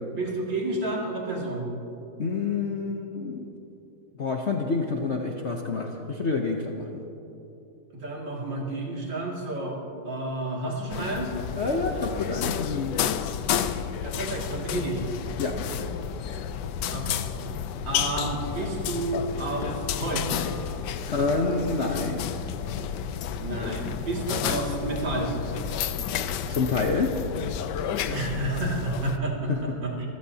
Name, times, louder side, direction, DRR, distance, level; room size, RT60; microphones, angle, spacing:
voice 1, 0.1-1.7 7.9-9.8 10.0-11.3 14.0-15.0 16.9-17.2 17.8-20.4 21.0-21.1 23.3-25.3 28.1-30.1, right 2 dB, 65° right, -3 dB, 3.1 m, -30 dB
voice 2, 2.2-3.5 4.2-7.0 11.5-13.1 15.4-15.6 21.1-22.4 26.5-27.1 29.5-29.6, left 4 dB, 50° left, 1 dB, 0.8 m, -28 dB
sound 1, 10.9-29.2, left 8 dB, 70° left, 1.1 m, -31 dB
25.0 x 16.0 x 2.8 m, 3.0 s
omnidirectional pair, 2.1 m